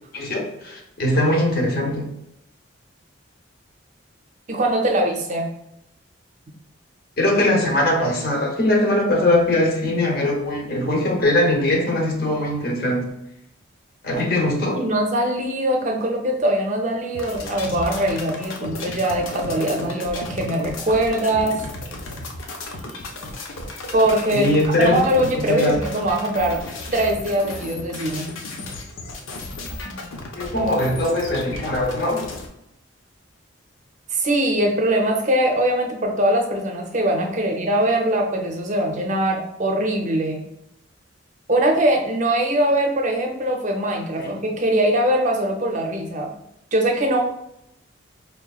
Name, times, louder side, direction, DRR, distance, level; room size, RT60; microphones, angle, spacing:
voice 1, 0.1-2.2 7.2-13.2 14.0-14.8 24.3-25.8 30.3-32.3 44.1-44.4, left 1 dB, 50° left, 1 dB, 0.8 m, -21 dB
voice 2, 4.5-5.5 14.1-14.2 14.7-21.6 23.9-24.5 24.8-26.6 26.9-28.3 34.1-40.4 41.5-46.3 46.7-47.2, right 1 dB, 35° right, 2 dB, 0.6 m, -22 dB
sound 1, 17.1-32.5, left 2 dB, 80° left, 0.7 m, -34 dB
4.7 x 2.9 x 2.3 m, 0.80 s
head